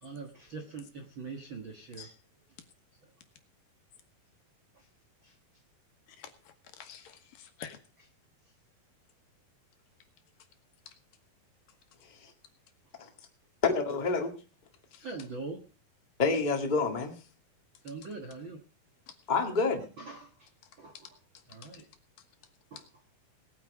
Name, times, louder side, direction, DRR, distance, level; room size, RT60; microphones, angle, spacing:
voice 1, 0.0-2.2 3.0-3.1 4.7-4.9 5.2-5.3 15.0-15.6 17.8-18.6 20.0-20.5 20.8-21.2 21.5-21.9 22.7-22.8, right 4 dB, 50° right, 3 dB, 1.5 m, -43 dB
voice 2, 6.2-7.8 10.9-11.0 14.9-15.1 19.1-19.2 20.9-21.0 21.6-21.8, left 8 dB, 70° left, 7 dB, 2.9 m, -48 dB
voice 3, 13.6-14.3 16.2-17.1 19.3-19.8, left 4 dB, 20° left, 2 dB, 1.2 m, -27 dB
19.0 x 9.0 x 4.8 m, 0.36 s
omnidirectional pair, 4.3 m